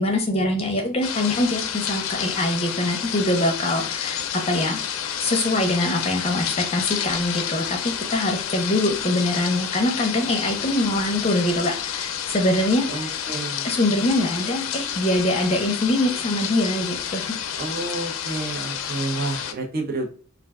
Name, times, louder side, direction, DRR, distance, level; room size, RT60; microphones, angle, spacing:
voice 1, 0.0-4.8 5.2-13.1 13.6-17.3, left 1 dB, 30° left, 3 dB, 0.5 m, -23 dB
sound 1, 1.0-19.5, left 8 dB, 85° left, 0.4 m, -30 dB
voice 2, 12.9-13.7 17.6-20.1, right 2 dB, 45° right, 2 dB, 0.5 m, -30 dB
2.4 x 2.2 x 3.4 m, 0.41 s
head